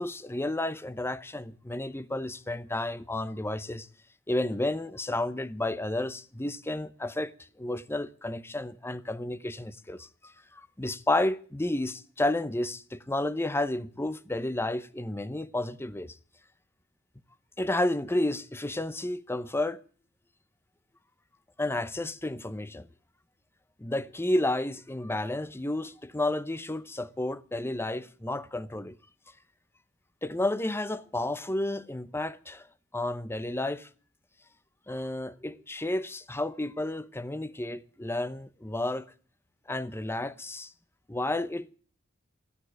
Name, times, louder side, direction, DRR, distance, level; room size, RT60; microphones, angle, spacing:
voice 1, 0.0-3.9 4.3-7.3 7.6-16.2 17.6-19.8 21.6-22.9 23.8-29.0 30.2-32.7 32.9-33.9 34.9-39.1 39.7-40.7 41.1-41.7, left 1 dB, 10° left, 0.7 m, -31 dB
14.5 x 9.8 x 9.5 m
head